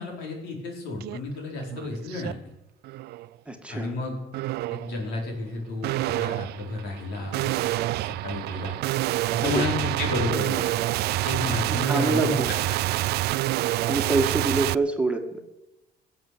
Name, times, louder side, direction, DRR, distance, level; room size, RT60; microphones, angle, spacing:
voice 1, 0.0-2.3 3.7-4.2 4.7-7.5 8.0-8.8 9.4-10.6 11.2-12.8 13.5-13.6, left 2 dB, 85° left, 0 dB, 4.7 m, -31 dB
sound 1, 1.0-1.2 1.6-2.3 2.8-3.3 4.3-4.9 5.8-14.7, right 16 dB, 75° right, 0.4 m, -27 dB
voice 2, 3.5-3.9 9.4-9.8 11.6-12.5 13.9-15.4, right 3 dB, 5° right, 4 dB, 1.9 m, -26 dB
16.5 x 7.8 x 8.6 m, 0.95 s
cardioid pair, 110°, 17 cm